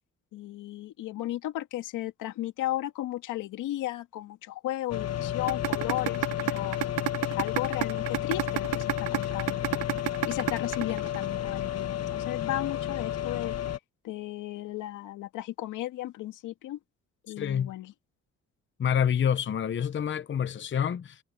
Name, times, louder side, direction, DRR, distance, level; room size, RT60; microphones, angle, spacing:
voice 1, 0.3-6.8 7.2-9.7 10.2-13.6 14.0-16.8 17.2-17.9, left 15 dB, 90° left, 2.2 m, -35 dB
sound 1, 4.9-13.8, left 11 dB, 55° left, 1.3 m, -32 dB
sound 2, 5.5-11.5, right 17 dB, 90° right, 0.9 m, -28 dB
voice 2, 17.4-17.7 18.8-21.2, left 8 dB, 40° left, 0.8 m, -27 dB
cardioid pair, 90°, 30 cm